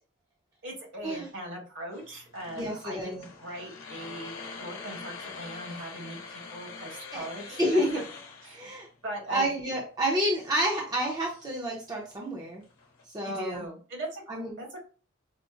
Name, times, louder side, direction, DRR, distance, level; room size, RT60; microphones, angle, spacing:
voice 1, 0.6-8.0 8.4-8.7 9.0-9.5 13.2-14.8, right 1 dB, 60° right, 0 dB, 1.5 m, -40 dB
sound 1, 1.9-13.0, left 4 dB, 75° left, 0.8 m, -46 dB
voice 2, 2.5-3.2 7.1-7.3 7.6-8.0 8.5-8.9 9.3-12.6 13.1-13.6 14.3-14.6, equal, 20° right, -3 dB, 0.6 m, -29 dB
5.0 x 2.0 x 2.4 m, 0.38 s
head